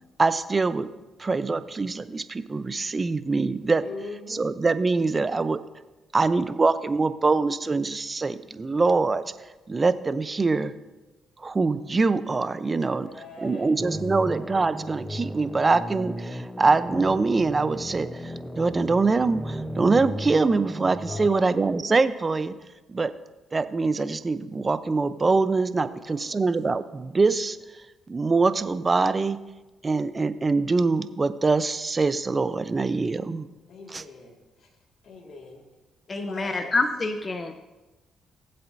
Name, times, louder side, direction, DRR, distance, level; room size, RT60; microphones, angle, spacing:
voice 1, 0.2-0.9 1.2-3.8 4.3-5.6 6.1-9.2 9.7-10.7 11.4-13.1 13.4-22.5 22.9-23.1 23.5-27.6 28.1-29.4 29.8-33.5 33.9-34.0, right 3 dB, 30° right, 13 dB, 0.7 m, -24 dB
voice 2, 3.8-4.5 12.8-13.8 21.1-21.7 25.8-26.3 33.7-34.7 35.0-35.6 36.1-36.8, left 3 dB, 60° left, 0 dB, 2.1 m, -41 dB
sound 1, 13.8-21.3, equal, 5° left, 0.9 m, -35 dB
voice 3, 36.1-37.5, left 3 dB, 35° left, 6 dB, 0.9 m, -27 dB
18.5 x 7.9 x 2.7 m, 1.1 s
supercardioid pair, 55°, 0 cm